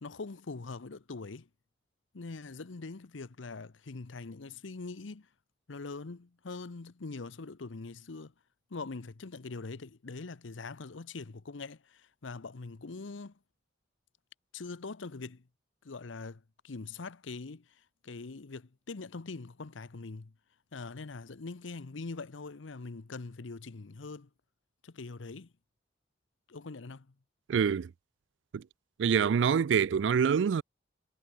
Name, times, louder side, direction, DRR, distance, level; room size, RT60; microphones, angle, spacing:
voice 1, 0.0-1.5 2.1-5.3 5.7-8.3 8.7-13.4 14.5-15.4 15.8-20.3 20.7-24.3 24.8-25.5 26.5-27.1, left 3 dB, 90° left, 0.8 m, -43 dB
voice 2, 27.5-27.9 28.5-28.6 29.0-30.6, right 7 dB, 70° right, 0.3 m, -26 dB
head